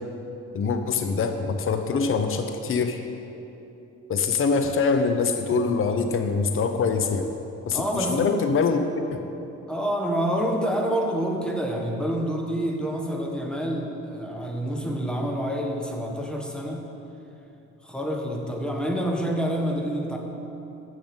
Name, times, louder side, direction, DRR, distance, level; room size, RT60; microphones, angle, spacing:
voice 1, 0.5-3.0 4.1-7.3 7.7-8.8 9.1-9.2, left 5 dB, 45° left, 6 dB, 0.7 m, -24 dB
voice 2, 7.7-8.2 9.7-16.9 17.8-20.2, equal, 5° left, 1 dB, 1.3 m, -27 dB
7.2 x 6.8 x 7.9 m, 2.9 s
cardioid pair, 90°, 30 cm